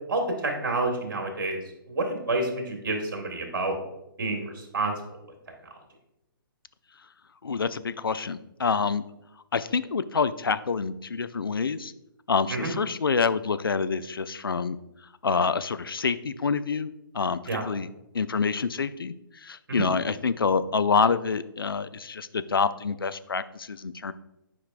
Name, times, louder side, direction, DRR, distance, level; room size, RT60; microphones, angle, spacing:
voice 1, 0.1-1.6 1.9-3.8 4.2-5.2 12.5-12.7 17.5-17.6 19.7-19.9, right 2 dB, 60° right, 2 dB, 1.7 m, -29 dB
voice 2, 7.4-9.0 9.5-11.9 12.3-14.8 15.2-17.9 18.1-24.1, left 5 dB, 75° left, 13 dB, 0.4 m, -27 dB
8.5 x 4.8 x 2.5 m, 0.87 s
figure-of-eight pair, 130°, 12 cm